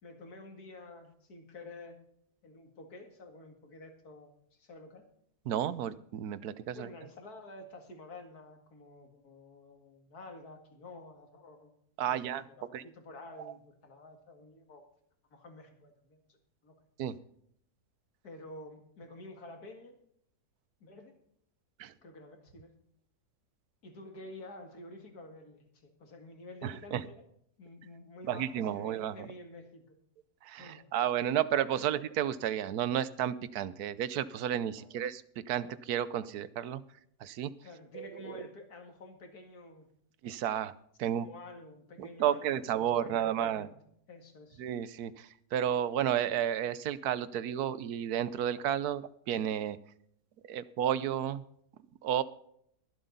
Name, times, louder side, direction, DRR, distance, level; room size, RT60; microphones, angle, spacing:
voice 1, 0.0-2.0 2.4-5.0 6.7-11.7 12.1-12.2 12.6-14.9 15.3-16.4 16.6-16.8 18.2-20.0 20.8-21.2 22.0-22.7 23.8-27.3 27.6-29.9 30.6-30.9 31.3-31.4 31.8-31.9 34.8-34.9 37.6-39.9 41.0-43.7 44.1-44.6, left 2 dB, 85° left, 5 dB, 2.6 m, -50 dB
voice 2, 5.5-6.9 12.0-12.4 12.7-12.8 13.4-13.5 17.0-17.1 21.8-21.9 26.6-27.0 28.3-29.3 30.4-36.8 37.2-37.5 37.9-38.4 40.2-40.7 41.0-41.3 42.0-43.7 44.6-49.8 50.5-51.4 52.0-52.2, right 10 dB, 85° right, 16 dB, 1.3 m, -32 dB
23.0 x 7.8 x 4.0 m, 0.69 s
omnidirectional pair, 1.6 m